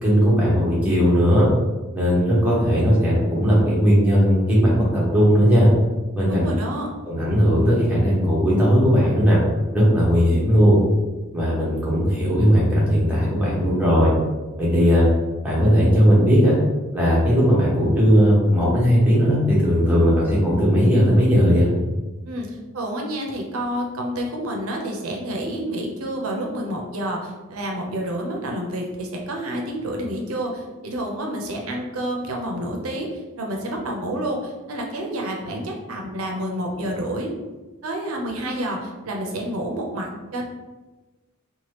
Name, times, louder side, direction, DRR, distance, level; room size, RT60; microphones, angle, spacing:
voice 1, 0.0-1.5 1.9-5.7 6.1-6.5 7.0-9.4 9.7-10.8 11.3-14.1 14.6-15.0 15.4-16.5 16.9-21.7, equal, 5° right, -8 dB, 0.9 m, -17 dB
voice 2, 6.3-6.9 22.3-37.3 37.8-40.4, right 1 dB, 85° right, 1 dB, 0.6 m, -29 dB
2.9 x 2.3 x 3.2 m, 1.2 s
head